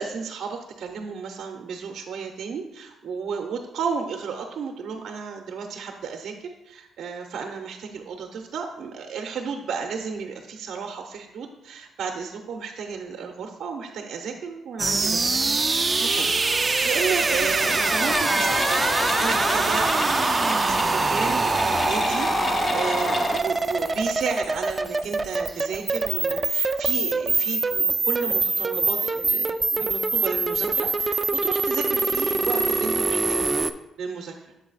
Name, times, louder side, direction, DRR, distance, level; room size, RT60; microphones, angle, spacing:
voice 1, 0.0-15.5 15.7-16.4 16.8-33.4 34.0-34.5, right 5 dB, 65° right, 3 dB, 0.6 m, -33 dB
sound 1, 14.8-33.7, right 3 dB, 30° right, 0.3 m, -24 dB
sound 2, 16.7-16.8 17.2-23.4, left 3 dB, 35° left, 0.5 m, -29 dB
7.0 x 4.0 x 3.9 m, 0.92 s
cardioid pair, 90°, 0 cm